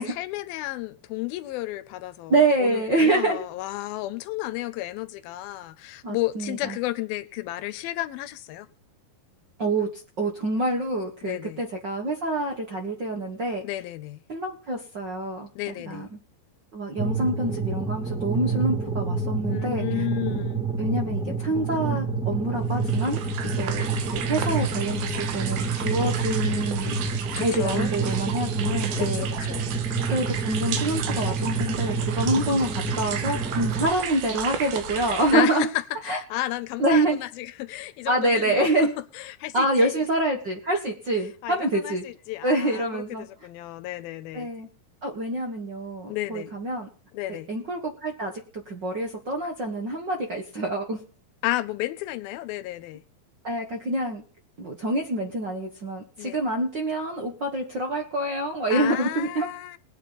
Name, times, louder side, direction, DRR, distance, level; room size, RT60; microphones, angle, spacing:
voice 1, 0.0-8.7 11.2-11.6 13.6-14.2 15.6-16.1 19.5-20.7 27.4-27.9 29.0-29.8 35.3-38.7 39.1-39.9 41.4-44.5 46.1-46.5 47.1-47.5 51.4-53.0 56.2-56.4 58.7-59.8, left 16 dB, 80° left, 2.5 m, -32 dB
voice 2, 2.3-3.4 6.0-6.8 9.6-13.6 14.3-15.5 15.9-16.1 16.7-19.8 20.8-23.2 23.5-26.9 27.4-29.2 30.1-35.7 36.1-36.2 36.8-37.2 38.1-38.9 39.5-42.0 42.4-43.3 44.3-44.7 45.0-46.9 47.3-51.0 53.4-54.2 54.6-59.5, right 2 dB, 45° right, 1.5 m, -26 dB
sound 1, 17.0-33.9, right 3 dB, ahead, 1.5 m, -28 dB
sound 2, 22.7-35.4, right 8 dB, 80° right, 3.0 m, -34 dB
21.0 x 9.3 x 4.1 m
omnidirectional pair, 4.3 m